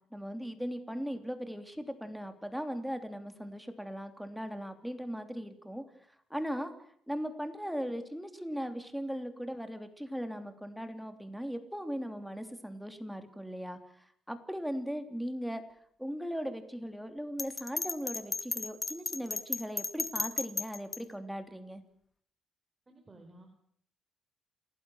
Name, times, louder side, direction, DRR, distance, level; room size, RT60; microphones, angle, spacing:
voice 1, 0.1-5.8 6.3-6.7 7.1-13.8 14.3-15.6 16.0-21.8, equal, ahead, 7 dB, 3.2 m, -38 dB
Bell, 17.4-21.0, left 4 dB, 25° left, 2.2 m, -34 dB
voice 2, 22.9-23.5, right 2 dB, 20° right, 3 dB, 5.1 m, -54 dB
29.0 x 18.5 x 6.5 m, 0.64 s
cardioid pair, 120°, 0 cm